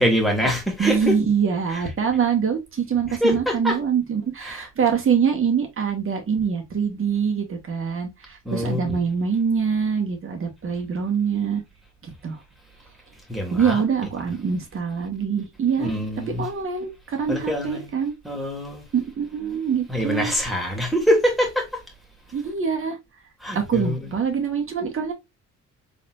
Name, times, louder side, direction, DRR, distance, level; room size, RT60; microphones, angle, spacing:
voice 1, 0.0-1.1 1.7-1.8 3.1-3.8 4.4-4.7 8.5-9.0 13.3-13.8 15.8-16.5 17.3-17.9 18.3-18.8 19.9-21.6 23.4-24.0, equal, ahead, 1.9 m, -24 dB
voice 2, 0.8-11.6 12.0-12.4 13.5-15.9 16.4-18.1 18.9-20.3 22.3-23.0 23.5-25.1, right 6 dB, 45° right, 1.7 m, -24 dB
4.0 x 3.4 x 2.5 m
cardioid pair, 90°, 30 cm